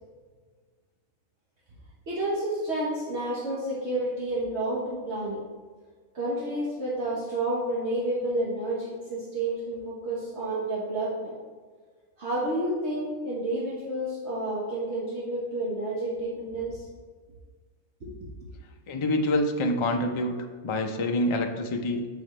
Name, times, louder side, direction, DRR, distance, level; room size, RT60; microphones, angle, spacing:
voice 1, 2.1-5.4 6.1-11.3 12.2-16.9 18.0-18.1, right 1 dB, 55° right, -6 dB, 1.4 m, -30 dB
voice 2, 18.9-20.4 20.6-22.1, left 1 dB, 50° left, 3 dB, 0.3 m, -26 dB
7.0 x 6.0 x 3.2 m, 1.5 s
omnidirectional pair, 1.4 m